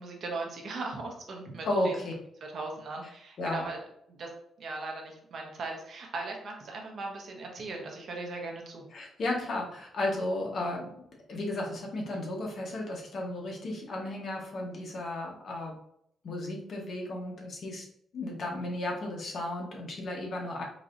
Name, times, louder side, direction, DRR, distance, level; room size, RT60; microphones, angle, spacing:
voice 1, 0.0-2.0 2.4-4.3 4.6-8.9, right 3 dB, 50° right, 1 dB, 0.8 m, -39 dB
voice 2, 1.6-2.1 3.4-3.7 8.9-10.9 11.3-15.7 16.2-17.8 18.1-20.6, left 1 dB, 45° left, -1 dB, 0.9 m, -34 dB
3.9 x 2.8 x 2.5 m, 0.71 s
cardioid pair, 145°, 0 cm